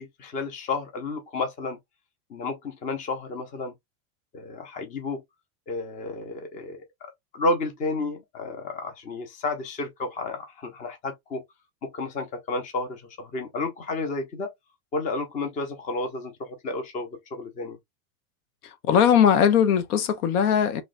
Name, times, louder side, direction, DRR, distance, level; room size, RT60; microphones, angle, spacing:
voice 1, 0.0-1.8 2.3-3.7 4.3-5.2 5.7-11.4 11.8-14.5 14.9-17.8, left 3 dB, 20° left, 0.6 m, -31 dB
voice 2, 18.6-20.8, left 8 dB, 85° left, 0.9 m, -20 dB
3.1 x 2.3 x 4.0 m
supercardioid pair, 160°, 43 cm